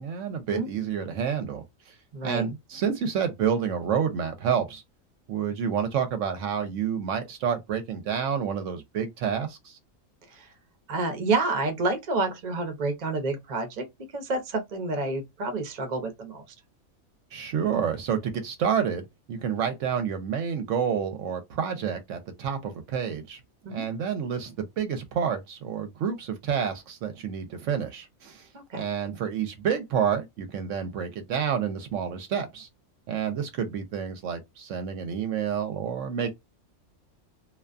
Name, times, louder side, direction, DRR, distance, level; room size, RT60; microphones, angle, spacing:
voice 1, 0.0-1.9 2.2-4.8 5.3-9.8 17.3-23.4 23.7-28.5 28.7-32.7 33.1-36.3, right 7 dB, 70° right, 0.9 m, -29 dB
voice 2, 2.1-2.5 10.3-10.5 10.9-13.8 14.1-16.4 23.6-23.9 28.5-28.8, right 3 dB, 40° right, 0.6 m, -29 dB
2.5 x 2.2 x 2.3 m
omnidirectional pair, 1.4 m